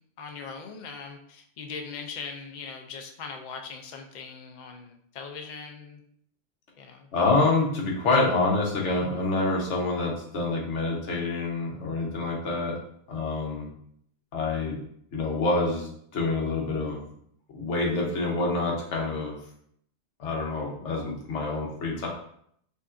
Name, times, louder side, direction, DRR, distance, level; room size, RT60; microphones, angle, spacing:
voice 1, 0.2-6.0 6.8-7.1, left 5 dB, 55° left, 4 dB, 0.5 m, -40 dB
voice 2, 7.1-12.8 13.1-13.7 14.3-14.8 15.1-17.0 17.5-19.4 20.2-22.1, left 3 dB, 75° left, -1 dB, 1.2 m, -27 dB
5.2 x 2.5 x 2.5 m, 0.68 s
omnidirectional pair, 1.2 m